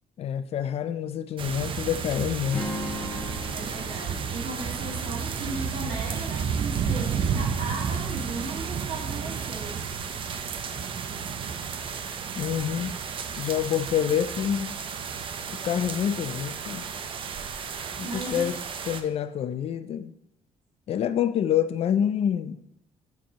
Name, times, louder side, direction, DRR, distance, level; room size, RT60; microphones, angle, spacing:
voice 1, 0.2-2.7 12.4-13.0 13.4-14.7 15.5-16.9 18.0-18.6 18.9-20.1 20.9-22.6, left 9 dB, 50° left, 0.4 m, -27 dB
sound 1, 1.4-19.0, right 6 dB, 40° right, 0.5 m, -32 dB
Strum, 2.5-6.7, left 2 dB, 10° left, 1.4 m, -39 dB
voice 2, 3.5-10.0 18.0-18.5, right 2 dB, 75° right, 1.9 m, -37 dB
7.4 x 2.9 x 5.1 m
cardioid pair, 135°, 13 cm